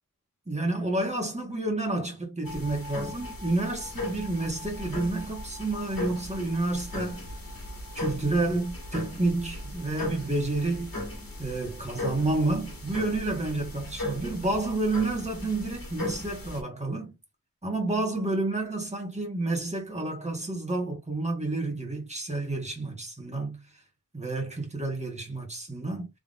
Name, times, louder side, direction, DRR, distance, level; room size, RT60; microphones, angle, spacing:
voice 1, 0.5-7.3 7.9-10.9 11.4-17.1 17.6-23.6 24.1-26.1, right 2 dB, 20° right, 1.5 m, -30 dB
sound 1, 2.4-16.6, left 1 dB, 80° left, 1.4 m, -37 dB
3.7 x 3.4 x 2.5 m
wide cardioid pair, 55°, 35 cm